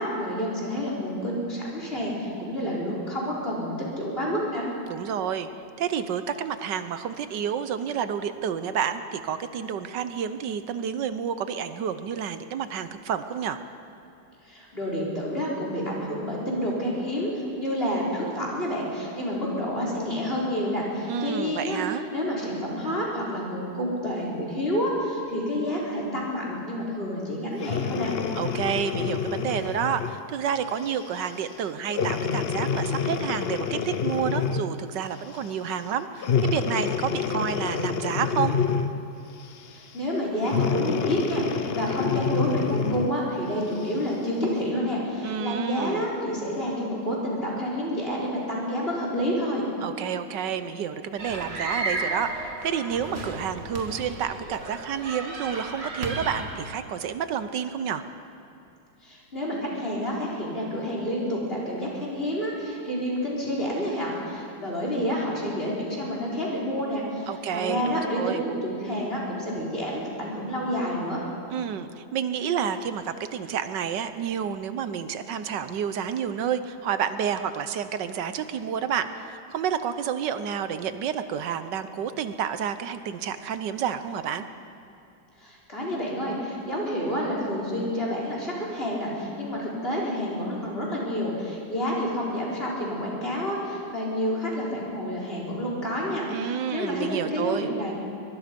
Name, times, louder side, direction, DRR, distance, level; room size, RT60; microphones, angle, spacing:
voice 1, 0.0-4.7 14.4-21.8 22.1-28.2 39.7-49.7 59.0-71.2 85.4-97.9, equal, 30° left, -4 dB, 4.5 m, -29 dB
voice 2, 4.9-5.5 5.8-13.6 21.1-22.0 28.3-38.6 45.2-46.1 49.8-58.0 67.3-68.4 71.5-84.5 96.3-97.7, right 8 dB, 75° right, 11 dB, 1.5 m, -30 dB
Breathing, 27.6-30.2 30.8-31.1 31.9-34.8 36.2-39.1 40.4-43.2 43.8-43.9, left 6 dB, 50° left, 0.7 m, -27 dB
sound 1, 51.2-56.7, right 2 dB, 35° right, 1.9 m, -33 dB
23.5 x 22.5 x 5.3 m, 2.7 s
omnidirectional pair, 1.9 m